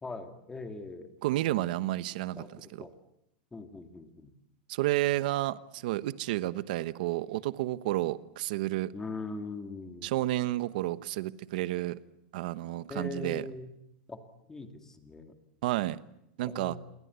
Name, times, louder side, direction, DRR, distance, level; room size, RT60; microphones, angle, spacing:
voice 1, 0.0-1.1 2.4-2.5 2.8-3.0 3.5-4.3 8.9-10.1 12.9-13.7 14.1-14.2 14.5-15.3 16.4-16.8, left 3 dB, 10° left, 2.4 m, -40 dB
voice 2, 1.2-2.4 2.7-2.9 4.7-8.9 10.0-12.0 12.3-13.4 15.6-16.0 16.4-16.8, right 16 dB, 60° right, 1.1 m, -31 dB
28.5 x 22.0 x 8.3 m
supercardioid pair, 165°, 5 cm